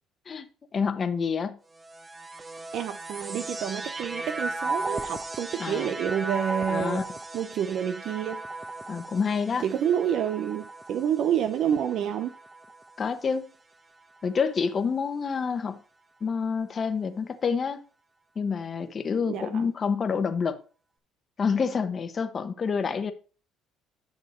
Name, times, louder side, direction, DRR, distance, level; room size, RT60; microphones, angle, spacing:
voice 1, 0.7-1.6 5.6-5.9 6.7-7.0 8.9-9.6 13.0-13.5 14.2-15.8 16.2-17.8 18.3-20.6 21.4-23.1, left 5 dB, 40° left, 1.1 m, -28 dB
sound 1, 1.8-13.2 14.0-14.8, right 2 dB, 25° right, 1.0 m, -36 dB
voice 2, 2.7-7.0 7.3-8.4 9.6-12.3 19.3-19.7, right 9 dB, 65° right, 0.6 m, -28 dB
10.5 x 6.5 x 3.1 m
supercardioid pair, 90°, 0 cm